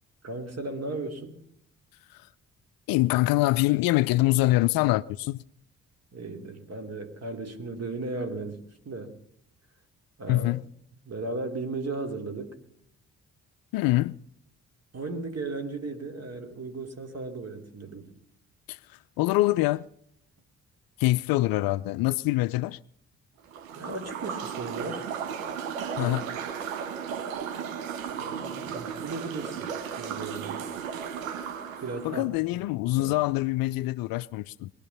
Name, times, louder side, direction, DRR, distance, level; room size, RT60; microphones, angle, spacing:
voice 1, 0.2-1.4 6.1-9.2 10.2-10.5 11.0-12.6 14.9-18.1 23.7-25.1 26.0-26.2 28.2-30.7 31.8-32.3 33.0-33.2, right 3 dB, 40° right, 2.9 m, -36 dB
voice 2, 2.9-5.4 10.3-10.6 13.7-14.1 18.7-18.8 19.2-19.9 21.0-22.8 26.0-26.2 32.0-34.7, left 18 dB, 60° left, 0.5 m, -24 dB
sound 1, 23.5-32.2, right 7 dB, 85° right, 1.1 m, -35 dB
22.0 x 11.5 x 5.6 m
figure-of-eight pair, 40°, 40 cm